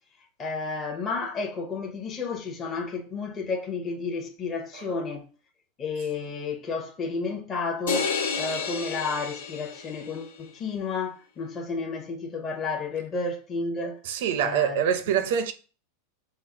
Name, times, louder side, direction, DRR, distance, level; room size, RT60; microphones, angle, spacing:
voice 1, 0.4-5.3 5.8-14.0 14.4-14.8, left 4 dB, 20° left, 0.8 m, -31 dB
sound 1, 7.9-10.2, left 5 dB, 85° left, 1.2 m, -30 dB
voice 2, 14.1-15.5, right 8 dB, 65° right, 0.6 m, -25 dB
5.5 x 2.0 x 4.7 m
supercardioid pair, 155°, 0 cm